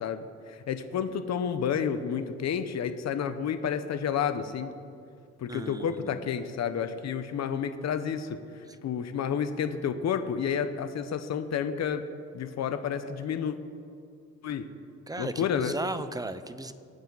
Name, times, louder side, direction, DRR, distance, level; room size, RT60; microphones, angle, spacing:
voice 1, 0.0-4.7 5.4-12.0 12.3-13.6 14.4-14.7 15.2-15.8, left 7 dB, 60° left, 10 dB, 1.0 m, -30 dB
voice 2, 5.5-6.2 15.1-16.7, right 2 dB, 10° right, 11 dB, 0.9 m, -36 dB
25.0 x 9.2 x 4.1 m, 2.4 s
cardioid pair, 90°, 30 cm